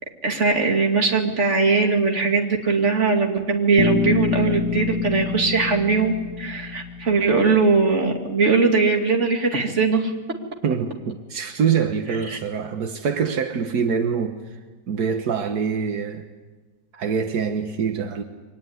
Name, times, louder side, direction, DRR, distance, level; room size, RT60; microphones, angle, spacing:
voice 1, 0.2-10.1 12.1-12.4, right 4 dB, 45° right, 3 dB, 2.7 m, -20 dB
Bass guitar, 3.8-7.8, left 5 dB, 80° left, 2.1 m, -27 dB
voice 2, 10.6-14.4 14.9-16.2 16.9-18.2, right 6 dB, 80° right, 6 dB, 1.8 m, -24 dB
24.0 x 19.5 x 9.6 m, 1.3 s
omnidirectional pair, 1.7 m